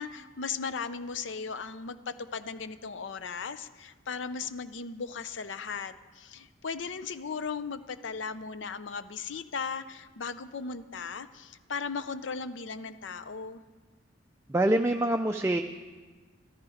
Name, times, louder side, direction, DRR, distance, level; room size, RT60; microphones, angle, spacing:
voice 1, 0.0-13.6, left 5 dB, 70° left, 13 dB, 0.6 m, -37 dB
voice 2, 14.5-15.6, right 1 dB, 15° right, 5 dB, 0.4 m, -25 dB
13.5 x 13.5 x 4.9 m, 1.4 s
head